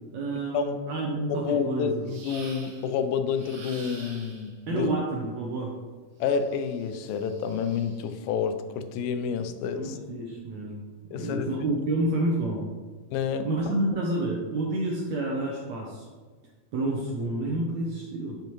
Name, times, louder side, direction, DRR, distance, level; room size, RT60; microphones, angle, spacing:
voice 1, 0.1-2.1 4.7-5.8 9.7-12.7 13.4-16.1 16.7-18.4, right 2 dB, 75° right, -1 dB, 1.7 m, -29 dB
voice 2, 1.3-4.9 6.2-10.0 11.1-11.7 13.1-13.8, left 6 dB, 85° left, 9 dB, 2.4 m, -29 dB
sound 1, 2.1-2.9 3.3-4.6 6.3-8.2, right 3 dB, 60° right, 1.7 m, -47 dB
7.9 x 6.9 x 3.1 m, 1.4 s
omnidirectional pair, 4.1 m